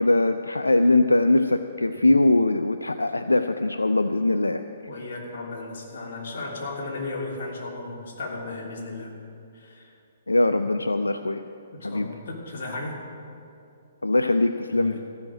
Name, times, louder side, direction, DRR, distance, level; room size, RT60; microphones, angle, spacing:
voice 1, 0.0-4.6 10.3-11.4 11.8-12.1 14.0-15.0, left 2 dB, 90° left, 10 dB, 0.4 m, -21 dB
voice 2, 4.9-9.1 9.5-9.9 11.7-13.0 14.7-15.0, left 2 dB, 55° left, -2 dB, 3.2 m, -35 dB
15.0 x 6.5 x 8.7 m, 2.6 s
figure-of-eight pair, 130°, 0 cm